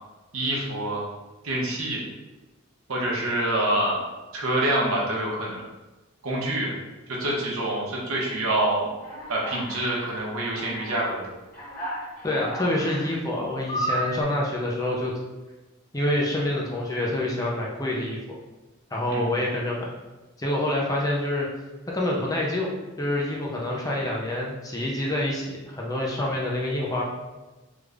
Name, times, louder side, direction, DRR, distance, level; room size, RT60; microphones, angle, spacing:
voice 1, 0.3-1.0 1.4-2.0 2.9-4.0 4.3-5.7 6.2-6.7 7.1-8.9 9.3-11.2 19.1-19.3, right 1 dB, 80° right, -3 dB, 0.9 m, -26 dB
Alarm, 9.0-10.0 10.5-11.0 11.5-13.2 13.7-14.2, right 1 dB, 40° left, 1.2 m, -32 dB
voice 2, 12.2-15.1 15.9-18.2 18.9-19.9 20.4-21.5 21.9-22.7 23.0-27.0, left 1 dB, 15° left, -3 dB, 0.5 m, -27 dB
3.3 x 2.5 x 3.3 m, 1.1 s
head